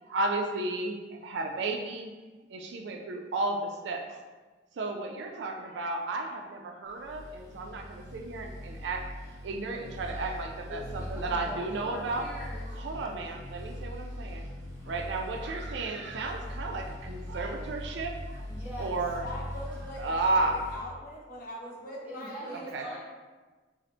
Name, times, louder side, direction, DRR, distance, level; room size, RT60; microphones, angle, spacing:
voice 1, 0.0-2.1 2.5-4.2 4.8-9.1 9.4-12.3 12.7-14.5 14.8-18.4 18.8-19.3 20.0-20.6 22.5-22.9, right 2 dB, 70° right, 4 dB, 0.4 m, -33 dB
sound 1, 7.0-20.8, left 1 dB, 15° left, 1.2 m, -41 dB
voice 2, 10.7-12.7 18.5-19.0 22.0-23.0, equal, 10° right, -9 dB, 1.0 m, -42 dB
voice 3, 19.2-23.0, left 1 dB, 50° left, -4 dB, 0.8 m, -42 dB
4.2 x 2.5 x 2.6 m, 1.3 s
head